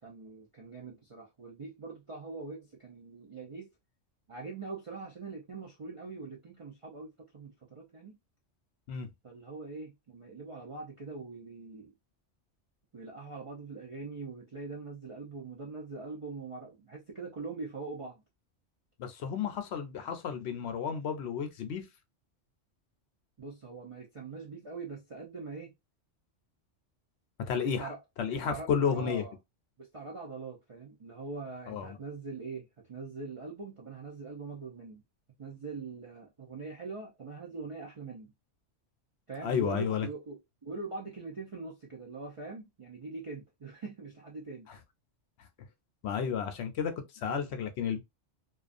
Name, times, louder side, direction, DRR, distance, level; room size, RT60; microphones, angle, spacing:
voice 1, 0.0-3.7 4.3-8.2 9.2-11.9 12.9-18.2 23.4-25.7 27.6-28.0 28.3-29.3 29.8-35.0 35.4-38.3 39.3-44.7, right 4 dB, 55° right, 0.3 m, -43 dB
voice 2, 19.0-21.9 27.5-27.9 28.2-29.2 31.7-32.0 39.4-40.1 45.4-45.5 46.0-48.0, left 7 dB, 70° left, 0.8 m, -32 dB
2.4 x 2.3 x 2.4 m
omnidirectional pair, 1.2 m